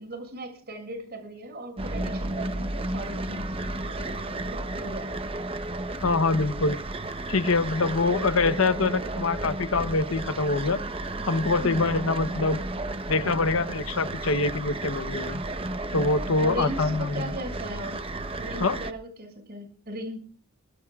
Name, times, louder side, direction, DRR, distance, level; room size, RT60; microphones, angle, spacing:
voice 1, 0.0-5.3 11.6-11.9 16.4-18.1 18.4-20.2, right 1 dB, 45° right, 5 dB, 6.6 m, -38 dB
sound 1, 1.8-18.9, right 2 dB, 25° right, 0.8 m, -33 dB
voice 2, 6.0-6.8 7.3-10.8 11.2-12.6 13.1-15.4 15.9-17.1 18.6-18.8, left 3 dB, 65° left, 10 dB, 0.9 m, -24 dB
24.0 x 19.0 x 2.4 m, 0.38 s
head